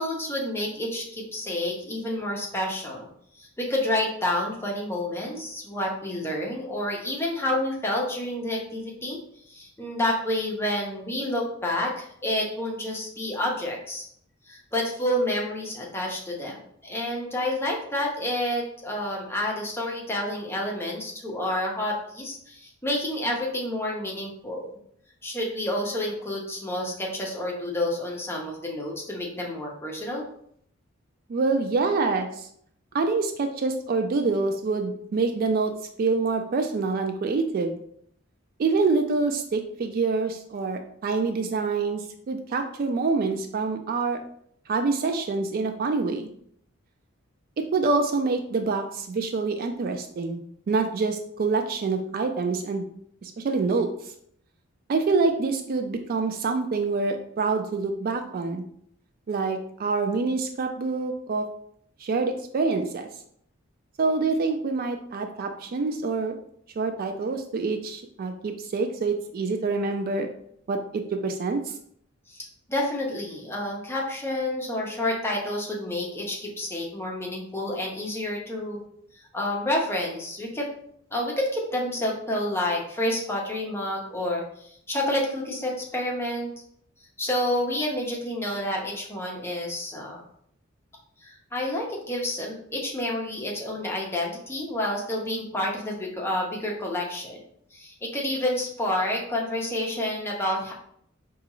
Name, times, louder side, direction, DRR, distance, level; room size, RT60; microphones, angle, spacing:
voice 1, 0.0-3.1 3.4-9.2 9.5-14.1 14.5-16.6 16.8-24.7 25.2-30.3 72.3-78.8 79.3-80.7 81.1-86.5 87.2-90.3 91.2-97.4 97.7-100.7, left 1 dB, 10° left, -2 dB, 0.7 m, -29 dB
voice 2, 31.3-32.5 32.9-35.7 36.0-37.8 38.6-44.2 44.7-46.3 47.6-50.4 50.7-52.9 53.2-53.9 54.9-58.6 59.3-61.5 62.0-63.1 64.0-66.4 66.8-70.3 70.7-71.7, right 4 dB, 45° right, 6 dB, 0.3 m, -26 dB
4.9 x 2.3 x 3.0 m, 0.67 s
head